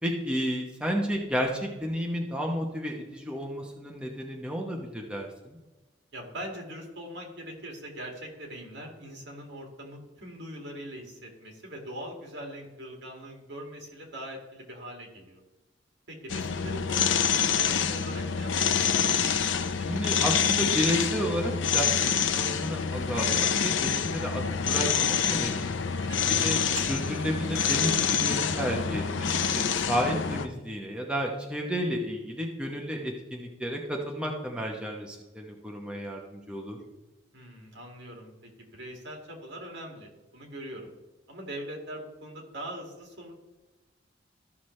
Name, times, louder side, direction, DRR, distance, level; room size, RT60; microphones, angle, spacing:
voice 1, 0.0-5.6 19.9-21.9 22.3-25.7 26.4-29.3 29.5-36.8, equal, 5° right, 0 dB, 0.9 m, -32 dB
voice 2, 6.1-15.4 16.1-19.0 23.2-23.7 26.0-26.4 37.3-38.3 38.6-40.9 41.3-43.3, right 1 dB, 65° right, 1 dB, 2.2 m, -42 dB
sound 1, 16.3-30.5, left 7 dB, 80° left, 0.6 m, -26 dB
13.5 x 5.9 x 3.2 m, 1.1 s
head